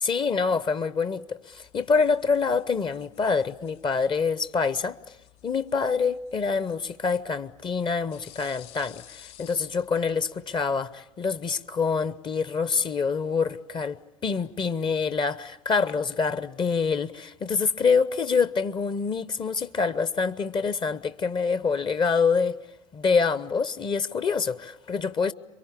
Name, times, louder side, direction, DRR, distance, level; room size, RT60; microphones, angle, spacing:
voice 1, 0.0-5.0 5.4-22.6 22.9-25.3, left 5 dB, 30° left, 1.0 m, -26 dB
sound 1, 1.5-10.7, left 13 dB, 55° left, 3.6 m, -54 dB
28.0 x 23.5 x 8.4 m
figure-of-eight pair, 70°, 17 cm